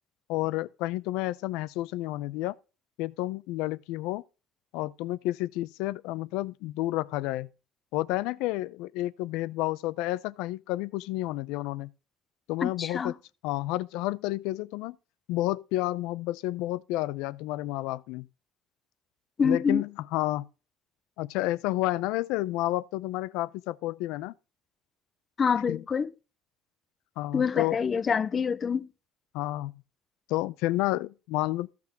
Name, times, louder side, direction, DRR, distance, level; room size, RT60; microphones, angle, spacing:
voice 1, 0.3-2.6 3.0-4.2 4.7-7.5 7.9-11.9 12.5-13.1 13.4-15.0 15.3-18.3 19.4-20.5 21.2-24.3 25.7-25.8 27.2-27.8 29.3-29.7 30.3-31.7, left 17 dB, 80° left, 0.5 m, -30 dB
voice 2, 12.6-13.1 19.4-19.8 25.4-26.1 27.3-28.9, left 6 dB, 25° left, 0.4 m, -26 dB
14.0 x 6.0 x 3.6 m
cardioid pair, 160°, 0 cm